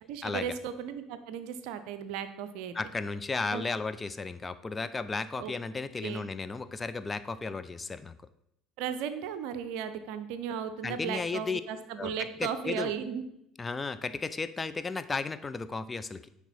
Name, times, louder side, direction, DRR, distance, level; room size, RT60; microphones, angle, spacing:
voice 1, 0.0-2.7 3.5-3.7 5.4-5.5 6.0-6.3 8.8-13.2, right 8 dB, 60° right, 10 dB, 0.5 m, -36 dB
voice 2, 2.7-8.1 10.8-11.6 12.0-12.1 12.4-12.9 13.6-16.3, left 4 dB, 20° left, 12 dB, 0.4 m, -34 dB
10.0 x 3.5 x 4.1 m, 0.79 s
figure-of-eight pair, 60°, 0 cm